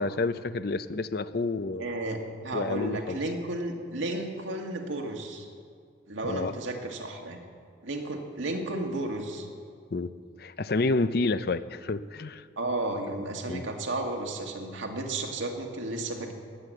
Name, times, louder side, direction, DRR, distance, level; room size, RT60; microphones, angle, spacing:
voice 1, 0.0-1.9 2.5-3.2 6.2-6.6 9.9-10.1 10.4-12.4 13.5-13.6, left 3 dB, 55° left, 14 dB, 0.5 m, -29 dB
voice 2, 1.8-5.5 6.1-7.4 7.8-9.5 12.6-16.3, right 2 dB, 90° right, 2 dB, 2.0 m, -33 dB
17.5 x 9.8 x 7.7 m, 2.1 s
head